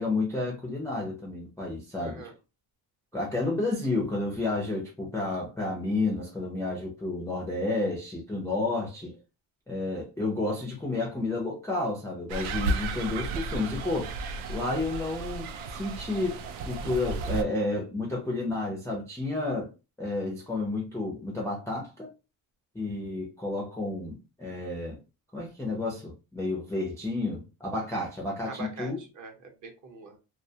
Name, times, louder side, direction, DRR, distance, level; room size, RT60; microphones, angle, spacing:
voice 1, 0.0-2.3 3.1-9.1 9.7-14.1 14.5-16.4 16.6-19.7 20.0-22.1 22.7-25.0 25.3-29.0, left 2 dB, 5° left, 0.4 m, -31 dB
voice 2, 2.0-2.3 28.5-30.2, right 3 dB, 40° right, 0.7 m, -43 dB
sound 1, 12.3-17.4, right 3 dB, 85° right, 0.5 m, -33 dB
2.3 x 2.2 x 2.7 m
cardioid pair, 150°, 47 cm